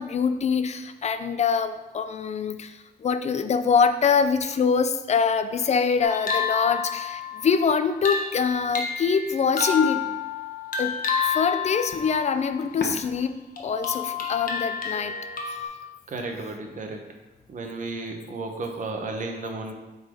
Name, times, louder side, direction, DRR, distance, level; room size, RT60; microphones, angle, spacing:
voice 1, 0.0-10.1 10.8-11.0 11.2-15.2, left 6 dB, 45° left, 10 dB, 0.4 m, -24 dB
sound 1, 6.0-13.1 13.6-15.6, left 6 dB, 65° left, 1.1 m, -30 dB
voice 2, 16.1-17.0 17.5-19.7, right 3 dB, 55° right, 3 dB, 1.0 m, -33 dB
8.0 x 4.0 x 5.1 m, 1.1 s
wide cardioid pair, 170°, 16 cm